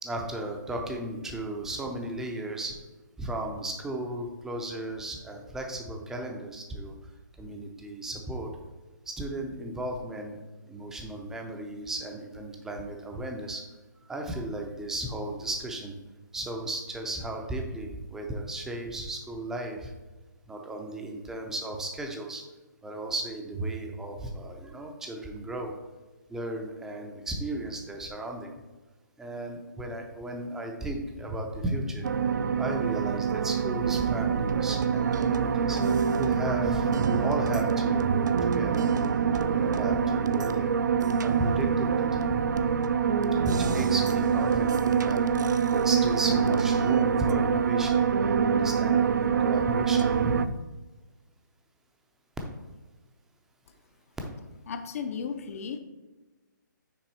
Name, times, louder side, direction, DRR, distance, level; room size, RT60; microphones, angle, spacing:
voice 1, 0.0-2.8 3.2-6.9 7.4-8.5 9.1-10.4 10.7-13.6 14.1-15.9 16.3-19.9 20.5-22.4 22.8-25.7 26.3-28.5 29.2-32.1 32.6-38.8 39.3-40.7 41.2-42.7 43.4-48.1 48.5-50.6, right 1 dB, 5° right, 2 dB, 0.5 m, -35 dB
sound 1, 32.0-50.5, right 6 dB, 65° right, 0.4 m, -25 dB
voice 2, 54.7-55.8, left 6 dB, 45° left, 8 dB, 0.6 m, -34 dB
6.1 x 4.1 x 4.2 m, 1.2 s
hypercardioid pair, 155°, 11 cm